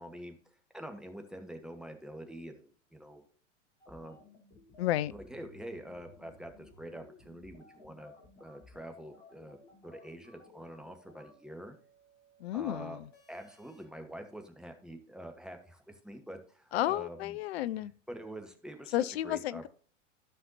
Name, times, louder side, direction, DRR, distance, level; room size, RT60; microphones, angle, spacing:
voice 1, 0.0-3.3 3.9-4.3 5.1-8.1 8.4-9.6 9.8-11.8 12.5-13.0 13.3-17.4 17.7-19.0 19.2-19.7, right 1 dB, ahead, 1.2 m, -46 dB
sound 1, 3.8-13.8, left 3 dB, 70° left, 3.2 m, -58 dB
voice 2, 4.8-5.1 12.4-13.1 16.7-17.9 18.9-19.7, left 13 dB, 55° left, 0.6 m, -32 dB
13.5 x 5.7 x 2.7 m
figure-of-eight pair, 95°, 37 cm